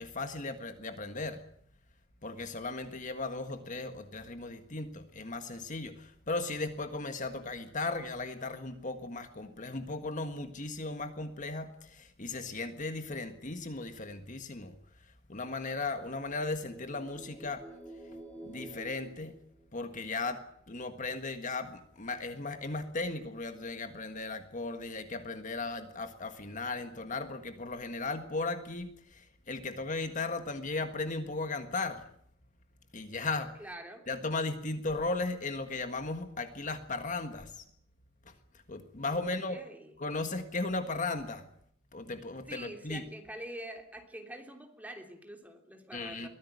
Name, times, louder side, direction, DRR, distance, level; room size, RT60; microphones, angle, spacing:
voice 1, 0.0-1.4 2.2-14.8 15.3-17.6 18.4-19.4 19.7-20.4 20.7-32.0 32.9-33.5 34.1-37.6 38.7-39.6 40.0-41.5 41.9-43.0 45.9-46.3, left 3 dB, 40° left, 8 dB, 1.6 m, -36 dB
sound 1, 16.2-20.1, right 1 dB, 10° left, 3.7 m, -50 dB
voice 2, 33.6-34.1 39.1-39.9 42.5-46.3, right 1 dB, 10° right, 4 dB, 3.2 m, -46 dB
23.0 x 15.5 x 9.6 m, 0.66 s
head